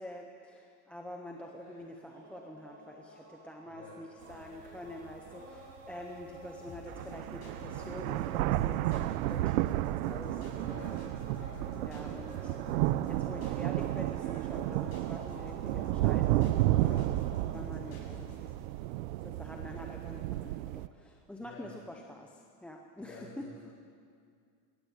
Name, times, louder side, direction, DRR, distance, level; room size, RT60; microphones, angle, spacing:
voice 1, 0.0-10.6 11.8-16.6 16.9-17.3 17.5-18.3 18.7-18.8 19.2-23.7, left 1 dB, 5° left, 1 dB, 0.7 m, -46 dB
sound 1, 1.3-17.6, right 1 dB, 25° right, 7.7 m, -52 dB
voice 2, 3.7-4.0 10.3-11.1 11.4-11.7 16.8-17.1 17.8-18.0 21.4-21.7 23.0-23.7, left 2 dB, 30° left, -2 dB, 6.8 m, -51 dB
sound 2, 4.3-4.4 5.1-5.2 6.4-6.5 6.9-20.9, right 16 dB, 80° right, 0.7 m, -32 dB
sound 3, 6.7-18.7, left 2 dB, 50° left, 7.0 m, -50 dB
21.0 x 17.0 x 8.3 m, 2.2 s
cardioid pair, 170°, 41 cm